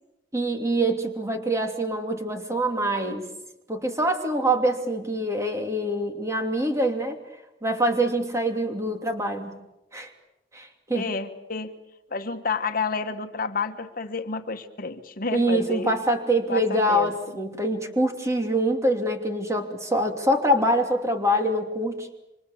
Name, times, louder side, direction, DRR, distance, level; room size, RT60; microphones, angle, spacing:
voice 1, 0.3-3.2 3.7-7.2 7.6-9.6 9.9-10.1 10.5-11.1 15.3-22.1, right 1 dB, 15° right, 4 dB, 2.9 m, -25 dB
voice 2, 10.9-11.7 12.1-15.9 16.5-17.1, left 4 dB, 55° left, 8 dB, 1.4 m, -30 dB
27.5 x 25.0 x 7.2 m, 0.93 s
head